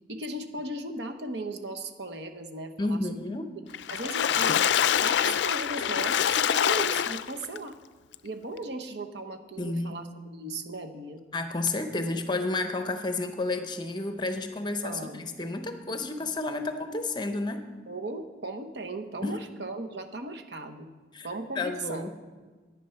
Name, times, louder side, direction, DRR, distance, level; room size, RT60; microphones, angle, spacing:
voice 1, 0.1-3.3 3.9-7.8 8.2-11.2 14.8-15.3 17.9-20.9 21.2-22.1, right 2 dB, 70° right, 6 dB, 1.0 m, -37 dB
voice 2, 2.8-3.5 9.6-10.0 11.3-17.7 19.2-19.3 21.1-21.3 21.6-22.1, left 2 dB, 25° left, 7 dB, 0.8 m, -31 dB
Water / Splash splatter, 3.7-7.6 8.1-8.2 8.6-8.7, left 9 dB, 75° left, 0.4 m, -25 dB
11.0 x 9.4 x 5.8 m, 1.4 s
head